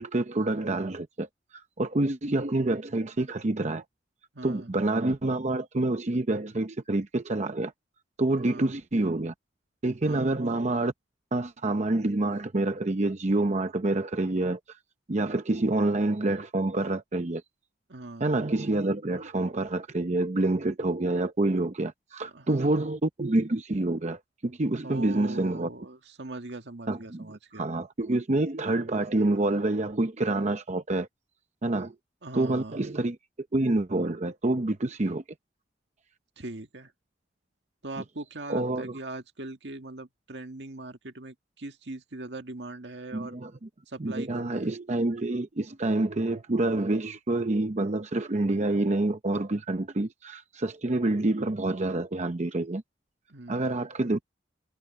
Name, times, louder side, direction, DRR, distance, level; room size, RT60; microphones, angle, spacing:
voice 1, 0.0-3.8 4.4-7.7 8.2-9.3 9.8-10.9 11.3-14.8 15.1-17.4 18.2-25.7 26.9-27.3 27.5-31.1 31.6-32.0 32.3-33.2 33.5-35.2 38.5-39.0 43.1-43.5 44.0-52.8 53.5-54.3, right 2 dB, 40° right, 0.8 m, -27 dB
voice 2, 4.3-4.7 8.4-8.8 10.0-10.3 17.9-18.3 22.2-22.8 24.8-27.6 32.2-32.8 36.4-36.9 37.8-43.4 43.9-44.7 53.3-53.8, right 2 dB, 75° right, 1.9 m, -40 dB
head